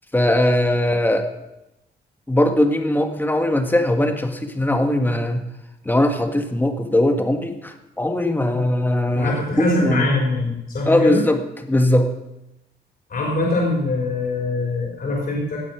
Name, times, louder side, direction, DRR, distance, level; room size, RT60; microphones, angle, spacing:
voice 1, 0.1-1.3 2.3-5.5 5.9-10.1 10.9-11.4 11.7-12.1, left 1 dB, 10° left, 5 dB, 1.8 m, -20 dB
voice 2, 9.1-11.2 13.1-15.6, left 2 dB, 55° left, -3 dB, 4.7 m, -23 dB
17.5 x 8.6 x 6.1 m, 0.90 s
cardioid pair, 95°, 18 cm